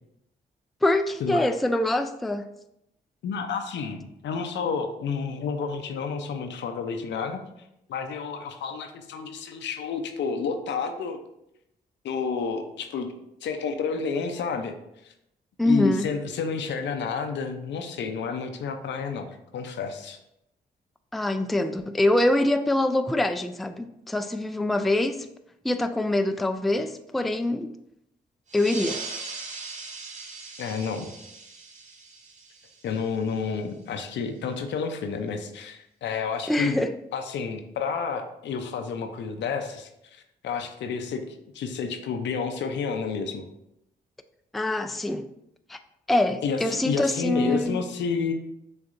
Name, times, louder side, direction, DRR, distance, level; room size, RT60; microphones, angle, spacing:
voice 1, 0.8-2.5 15.6-16.1 21.1-25.3 25.6-27.7 28.5-29.0 36.5-36.9 44.5-45.2 45.7-45.8 46.1-47.8, left 1 dB, ahead, 0.3 m, -24 dB
voice 2, 3.2-7.4 7.9-11.2 12.0-13.1 13.4-14.7 15.0-15.1 15.7-19.3 19.5-20.2 30.6-31.1 32.8-36.8 37.1-41.2 41.5-43.4 46.4-48.3, left 5 dB, 75° left, 0.6 m, -30 dB
sound 1, 28.5-33.6, right 4 dB, 40° right, 0.8 m, -40 dB
6.4 x 2.6 x 2.5 m
supercardioid pair, 50°, 19 cm